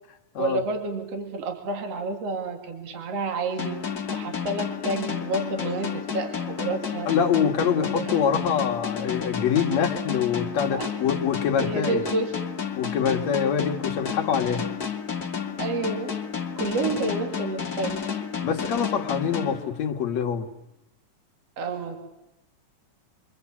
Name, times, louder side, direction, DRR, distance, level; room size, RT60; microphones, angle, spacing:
voice 1, 0.4-3.8 4.1-7.1 7.8-8.2 10.7-10.9 11.6-12.3 13.0-13.1 15.6-16.2 16.6-18.0 21.6-22.0, right 3 dB, 55° right, 5 dB, 3.5 m, -29 dB
sound 1, 3.6-20.2, left 7 dB, 35° left, 2.1 m, -31 dB
voice 2, 7.1-12.1 12.8-14.6 18.4-20.5, left 7 dB, 65° left, 3 dB, 3.0 m, -25 dB
28.0 x 24.5 x 8.5 m, 0.85 s
omnidirectional pair, 3.5 m